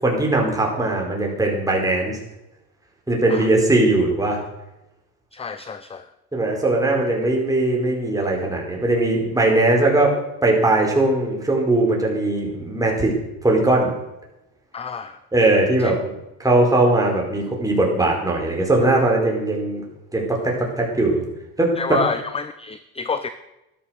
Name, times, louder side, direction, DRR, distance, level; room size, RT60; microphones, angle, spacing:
voice 1, 0.0-2.2 3.1-4.4 6.3-10.1 10.4-13.1 13.4-13.9 15.3-15.9 16.4-19.8 20.1-21.2 21.6-22.0, right 2 dB, 10° right, -1 dB, 4.7 m, -19 dB
voice 2, 5.3-6.1 14.7-15.2 15.8-15.9 21.8-23.3, left 5 dB, 15° left, 12 dB, 0.7 m, -28 dB
13.5 x 12.5 x 6.5 m, 0.92 s
cardioid pair, 125°, 38 cm